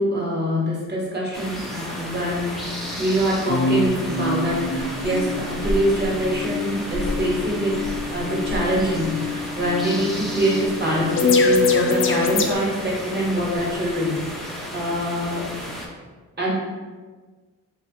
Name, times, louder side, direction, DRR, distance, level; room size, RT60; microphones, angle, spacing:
voice 1, 0.0-15.4 16.4-16.5, equal, 30° right, -4 dB, 1.3 m, -24 dB
sound 1, 1.3-15.9, equal, ahead, 0.7 m, -33 dB
sound 2, 3.5-12.5, left 4 dB, 40° left, 0.4 m, -25 dB
3.3 x 3.1 x 2.9 m, 1.4 s
cardioid pair, 80°, 32 cm